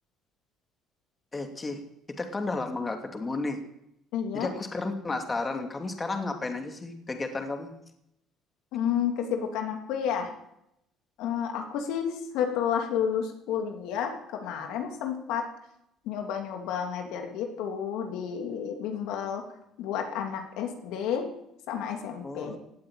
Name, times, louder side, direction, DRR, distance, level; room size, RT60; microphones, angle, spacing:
voice 1, 1.3-1.8 2.1-3.6 4.3-7.7 22.2-22.6, left 3 dB, 25° left, 5 dB, 2.7 m, -32 dB
voice 2, 4.1-4.5 8.7-10.3 11.2-15.4 16.1-19.4 19.8-21.3 21.7-22.6, left 8 dB, 80° left, 4 dB, 3.0 m, -31 dB
17.5 x 8.6 x 9.0 m, 0.80 s
cardioid pair, 90°, 0 cm